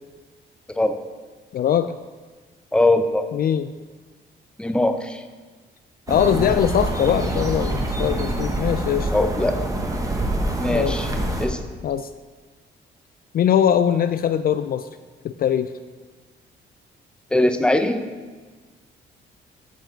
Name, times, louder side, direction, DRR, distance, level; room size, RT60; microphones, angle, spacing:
voice 1, 0.7-1.0 2.7-3.3 4.6-5.2 9.1-9.6 10.6-11.1 11.4-11.6 17.3-18.0, left 1 dB, 5° left, 7 dB, 0.7 m, -21 dB
voice 2, 1.5-1.9 3.3-3.7 6.1-9.1 10.7-11.3 11.8-12.1 13.3-14.9 15.2-15.7, left 9 dB, 50° left, 11 dB, 0.4 m, -21 dB
sound 1, 6.1-11.5, right 1 dB, 20° right, 1.2 m, -25 dB
14.0 x 4.7 x 4.5 m, 1.4 s
cardioid pair, 100°, 19 cm